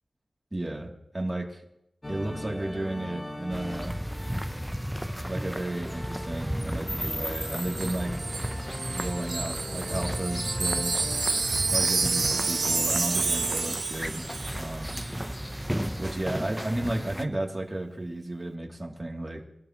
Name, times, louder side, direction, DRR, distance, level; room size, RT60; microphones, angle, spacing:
voice 1, 0.5-1.6 2.1-4.0 5.3-8.2 8.9-11.0 11.7-14.3 14.5-15.0 16.0-19.4, right 1 dB, 20° right, 0 dB, 2.9 m, -33 dB
sound 1, 2.0-13.7, left 1 dB, 25° left, 1.6 m, -41 dB
sound 2, 3.5-17.2, equal, ahead, 0.8 m, -34 dB
Wind chime, 7.4-14.6 14.9-15.1, right 4 dB, 75° right, 1.3 m, -29 dB
24.5 x 12.5 x 3.1 m, 0.80 s
cardioid pair, 60°, 0 cm